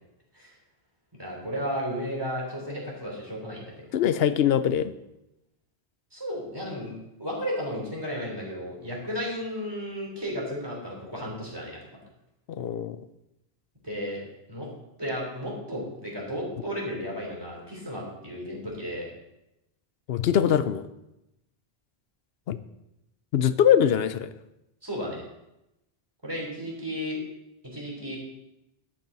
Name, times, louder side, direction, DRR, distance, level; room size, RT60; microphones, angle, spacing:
voice 1, 1.2-3.8 6.1-6.9 7.2-11.8 13.8-14.2 14.5-14.7 15.0-19.1 24.8-25.2 26.2-27.2 27.7-28.2, equal, 25° right, -3 dB, 3.6 m, -33 dB
voice 2, 3.9-4.9 12.5-13.0 20.1-20.9 22.5-22.6 23.3-24.3, left 9 dB, 75° left, 13 dB, 0.9 m, -22 dB
12.0 x 9.0 x 4.0 m, 0.90 s
omnidirectional pair, 1.1 m